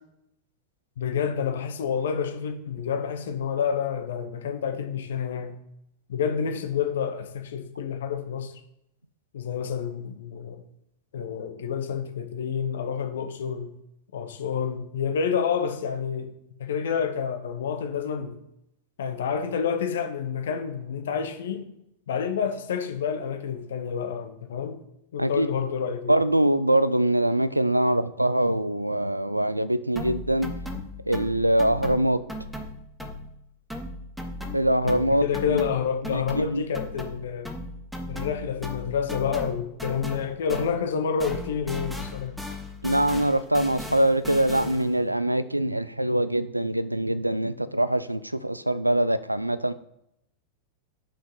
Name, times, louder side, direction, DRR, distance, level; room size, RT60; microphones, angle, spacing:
voice 1, 1.0-5.5 6.1-8.5 9.3-10.6 11.1-13.7 14.1-16.3 16.6-18.4 19.0-21.7 22.1-24.8 25.1-26.1 34.8-37.5 38.1-42.4, left 7 dB, 65° left, 0.9 m, -29 dB
voice 2, 26.1-30.5 31.1-32.2 34.5-35.6 36.1-36.6 42.8-49.7, right 1 dB, 90° right, 0.4 m, -23 dB
sound 1, 30.0-33.4 33.7-40.9 41.2-45.0, left 1 dB, ahead, 1.0 m, -37 dB
5.8 x 5.0 x 5.3 m
figure-of-eight pair, 90°, 0 cm